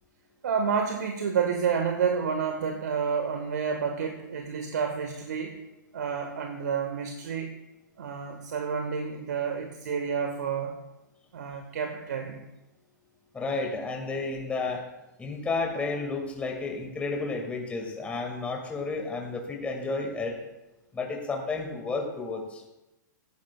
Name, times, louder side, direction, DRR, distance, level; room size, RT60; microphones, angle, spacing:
voice 1, 0.4-5.6 5.9-7.5 8.0-10.8 11.3-12.5, right 6 dB, 60° right, 5 dB, 1.4 m, -29 dB
voice 2, 13.3-14.8 15.2-20.4 20.9-22.6, left 3 dB, 10° left, 2 dB, 1.9 m, -32 dB
17.5 x 14.5 x 2.3 m, 0.95 s
figure-of-eight pair, 110°, 10 cm